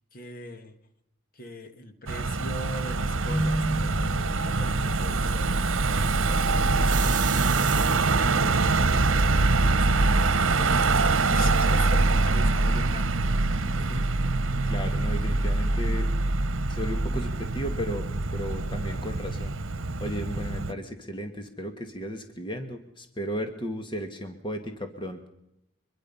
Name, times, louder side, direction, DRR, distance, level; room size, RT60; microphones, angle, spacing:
voice 1, 0.1-0.8 1.3-6.9 7.3-13.1 13.9-14.1, left 1 dB, 45° left, 7 dB, 2.0 m, -42 dB
Car passing by / Engine, 2.1-20.7, right 3 dB, 80° right, 1.1 m, -24 dB
Keyboard (musical), 3.3-5.1, right 1 dB, 20° right, 1.6 m, -31 dB
sound 1, 6.8-8.4 9.2-9.3 9.7-9.8 10.1-10.7, right 13 dB, 40° right, 0.7 m, -35 dB
voice 2, 14.7-16.1 16.7-19.5 20.0-25.3, equal, 25° left, 5 dB, 1.7 m, -35 dB
24.5 x 21.5 x 5.6 m, 0.84 s
head